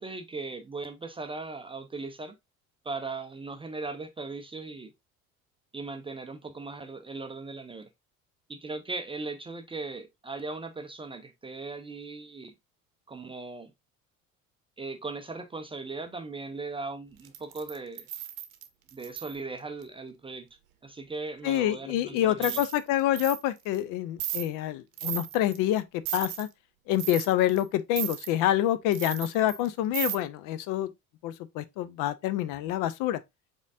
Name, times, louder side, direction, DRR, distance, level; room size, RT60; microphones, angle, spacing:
voice 1, 0.0-2.3 2.8-4.9 5.7-7.9 8.5-12.5 13.1-13.7 14.8-18.0 18.9-20.5 20.8-22.6, right 3 dB, 15° right, 0.5 m, -38 dB
sound 1, 17.2-19.3 22.4-22.8 23.2-23.4 23.7-23.8 24.2-24.5 25.0-25.6 26.1-26.5 26.9-27.6 28.0-28.3 28.9-29.7 29.9-30.2, right 13 dB, 65° right, 0.8 m, -35 dB
voice 2, 21.4-25.8 26.1-26.5 26.9-30.9 31.2-33.2, left 13 dB, 50° left, 0.5 m, -27 dB
5.1 x 3.7 x 2.5 m
figure-of-eight pair, 60°, 44 cm